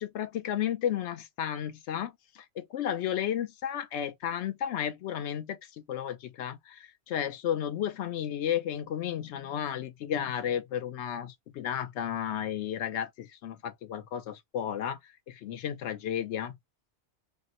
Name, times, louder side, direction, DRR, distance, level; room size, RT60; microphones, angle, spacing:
voice 1, 0.0-5.6 5.9-15.0 15.3-16.5, left 10 dB, 80° left, 0.9 m, -33 dB
3.5 x 2.1 x 2.6 m
omnidirectional pair, 1.2 m